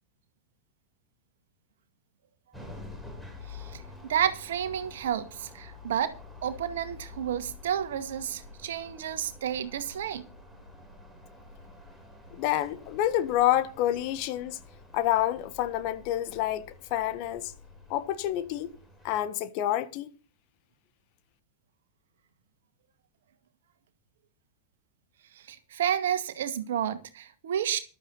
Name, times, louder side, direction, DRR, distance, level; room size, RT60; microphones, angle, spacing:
sound 1, 2.5-19.2, left 3 dB, 5° left, 7.8 m, -48 dB
voice 1, 3.5-3.8 4.1-6.1 6.4-10.2 25.3-27.8, right 9 dB, 60° right, 2.0 m, -31 dB
voice 2, 12.3-14.6 14.9-17.5 17.9-18.7 19.0-20.1, left 13 dB, 45° left, 1.6 m, -28 dB
15.0 x 12.5 x 4.1 m
figure-of-eight pair, 90°, 0 cm